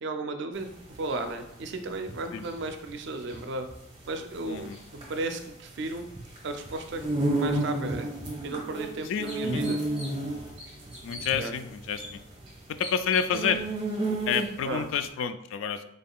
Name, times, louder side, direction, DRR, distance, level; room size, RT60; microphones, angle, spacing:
voice 1, 0.0-3.7 4.1-6.0 6.4-7.0 7.3-8.1 8.4-9.8 11.4-11.5 14.6-14.9, right 2 dB, 60° right, 6 dB, 0.4 m, -34 dB
sound 1, 0.6-14.8, right 2 dB, 25° right, 1.0 m, -32 dB
voice 2, 4.5-4.8 9.1-9.6 11.0-12.2 12.7-13.6 14.3-15.8, left 7 dB, 70° left, 11 dB, 0.3 m, -29 dB
sound 2, 9.3-10.3 10.6-11.3 12.0-12.1 12.8-13.5, left 1 dB, 5° right, 1.5 m, -41 dB
3.7 x 3.6 x 2.3 m, 0.80 s
head